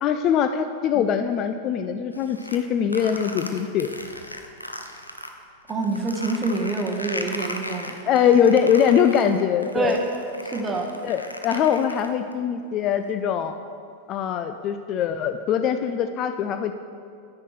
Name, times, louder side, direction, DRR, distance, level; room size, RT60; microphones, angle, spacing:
voice 1, 0.0-3.9 8.1-10.0 11.0-13.5 14.1-16.7, left 8 dB, 35° left, 8 dB, 0.3 m, -22 dB
sound 1, 2.1-5.3 5.7-12.3, left 1 dB, 85° left, 0.6 m, -36 dB
voice 2, 5.7-7.9 9.7-10.0 10.4-10.9, right 3 dB, 20° right, 2 dB, 1.1 m, -26 dB
9.7 x 9.6 x 3.2 m, 2.4 s
figure-of-eight pair, 90°, 0 cm